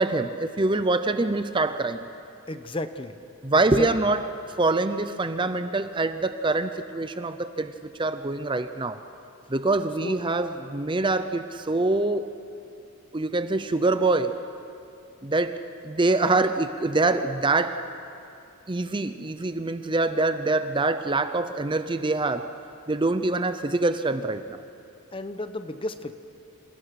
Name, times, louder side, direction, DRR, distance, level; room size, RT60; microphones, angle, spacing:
voice 1, 0.0-2.1 3.4-4.3 4.6-7.7 8.0-9.0 9.5-12.3 13.1-14.4 15.2-17.8 18.7-22.5 22.9-24.6, right 2 dB, 20° right, 10 dB, 0.6 m, -25 dB
voice 2, 2.5-3.2 3.8-3.9 10.0-10.2 25.1-26.2, left 1 dB, 25° left, 10 dB, 0.9 m, -33 dB
28.0 x 27.0 x 5.9 m, 2.6 s
head